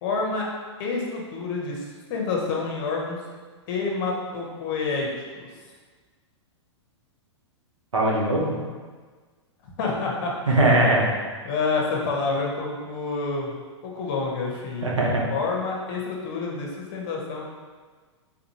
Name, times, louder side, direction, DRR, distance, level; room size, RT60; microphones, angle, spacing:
voice 1, 0.0-0.4 0.8-1.8 2.1-3.2 3.7-5.1 5.4-5.5 9.8-10.5 11.4-13.5 13.8-15.0 15.3-17.4, left 4 dB, 45° left, -1 dB, 0.8 m, -28 dB
voice 2, 7.9-8.6 10.5-11.2 14.8-15.2, right 1 dB, 85° right, -3 dB, 0.8 m, -20 dB
3.7 x 2.6 x 2.9 m, 1.5 s
hypercardioid pair, 110°, 16 cm